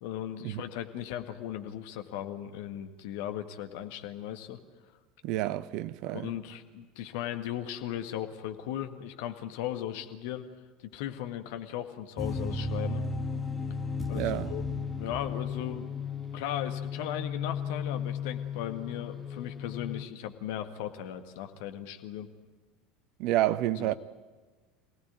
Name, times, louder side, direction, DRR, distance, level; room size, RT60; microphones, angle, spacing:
voice 1, 0.0-4.6 6.1-10.5 10.9-13.0 14.1-14.7 15.0-15.9 16.3-22.3 23.8-23.9, left 11 dB, 60° left, 1.8 m, -37 dB
voice 2, 5.2-6.3 14.1-14.5 23.2-23.9, right 14 dB, 50° right, 0.7 m, -29 dB
sound 1, 12.2-20.0, left 5 dB, 10° left, 1.7 m, -35 dB
27.0 x 17.5 x 9.5 m
figure-of-eight pair, 75°, 0 cm